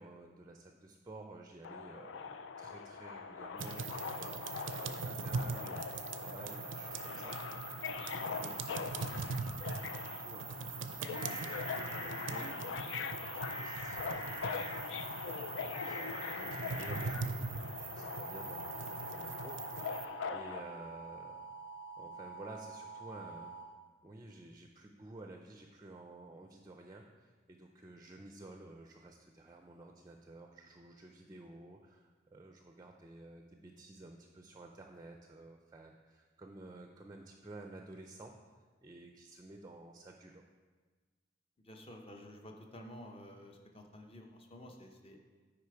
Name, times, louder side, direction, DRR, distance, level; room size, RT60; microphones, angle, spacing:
voice 1, 0.0-21.4 22.0-23.6 24.0-38.4 38.8-40.4, right 2 dB, 20° right, 3 dB, 0.4 m, -53 dB
Subway metro underground, 1.6-20.6, left 5 dB, 80° left, 0.4 m, -42 dB
sound 1, 3.6-20.0, right 5 dB, 85° right, 0.5 m, -42 dB
sound 2, 11.1-12.4 13.4-14.8 15.7-17.1 18.0-23.6, right 2 dB, 65° left, 2.5 m, -46 dB
voice 2, 41.6-45.2, left 1 dB, 30° left, 3 dB, 0.8 m, -51 dB
8.3 x 5.0 x 4.7 m, 1.4 s
head